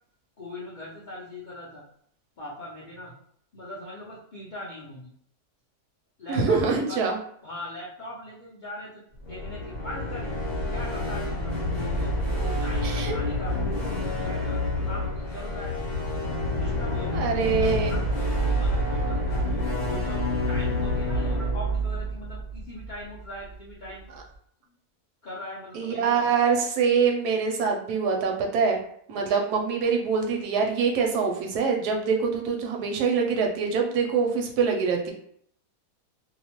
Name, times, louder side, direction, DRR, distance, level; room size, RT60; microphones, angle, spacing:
voice 1, 0.4-1.8 2.4-3.1 3.5-5.1 6.2-7.0 7.4-9.0 9.3-10.3 10.7-15.7 16.5-24.0 24.7-24.8 25.2-26.3, left 1 dB, 70° left, -6 dB, 0.4 m, -40 dB
voice 2, 6.3-7.2 12.8-13.1 17.1-17.9 25.7-28.8 29.1-35.1, right 5 dB, 85° right, 2 dB, 1.1 m, -24 dB
sound 1, 9.1-23.2, left 1 dB, 35° left, 0.7 m, -28 dB
2.8 x 2.0 x 2.9 m, 0.65 s
omnidirectional pair, 1.7 m